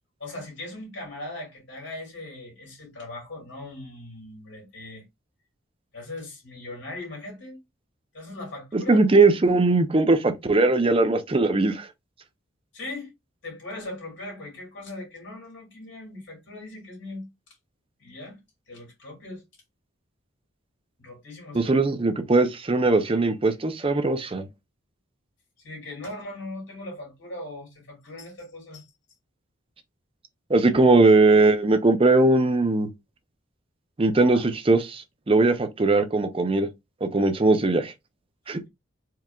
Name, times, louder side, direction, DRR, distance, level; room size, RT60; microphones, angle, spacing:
voice 1, 0.2-5.0 5.9-7.6 8.1-9.0 12.7-13.1 13.4-17.3 18.0-18.4 18.7-19.4 21.0-21.8 25.6-28.8 34.3-34.5, left 2 dB, 60° left, 2.9 m, -39 dB
voice 2, 8.7-11.9 21.5-24.4 30.5-32.9 34.0-36.7 37.0-37.9 38.5-38.6, right 2 dB, 25° right, 0.6 m, -20 dB
4.6 x 3.5 x 2.4 m
head